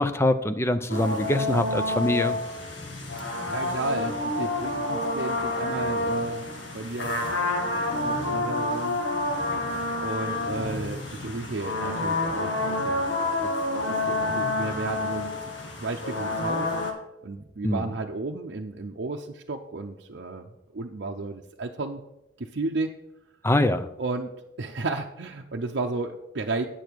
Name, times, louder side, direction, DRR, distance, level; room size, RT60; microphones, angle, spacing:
voice 1, 0.0-2.4 17.6-17.8 23.4-23.9, left 1 dB, 15° left, 10 dB, 0.5 m, -24 dB
sound 1, 0.9-16.9, left 2 dB, 70° left, 1.8 m, -28 dB
voice 2, 3.2-6.4 6.7-7.3 8.0-9.0 10.0-13.1 13.4-15.3 15.8-16.7 17.2-20.5 20.7-22.0 22.4-23.0 24.0-24.3 24.6-26.6, right 3 dB, 65° right, 0 dB, 0.7 m, -33 dB
9.0 x 7.0 x 4.6 m, 0.90 s
head